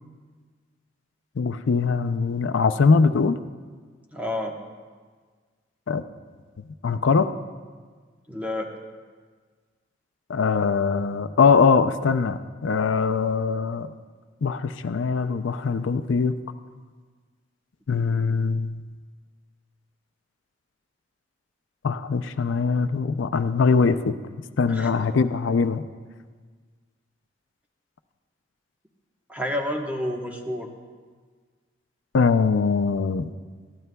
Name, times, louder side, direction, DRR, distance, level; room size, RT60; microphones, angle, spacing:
voice 1, 1.4-3.4 5.9-6.0 6.8-7.3 10.3-13.9 14.4-16.3 17.9-18.7 21.8-24.1 24.6-25.8 32.1-33.3, left 5 dB, 80° left, 11 dB, 0.5 m, -22 dB
voice 2, 4.1-4.5 8.3-8.7 24.7-24.9 29.3-30.7, left 1 dB, 10° right, 1 dB, 1.0 m, -29 dB
21.5 x 15.0 x 2.3 m, 1.5 s
head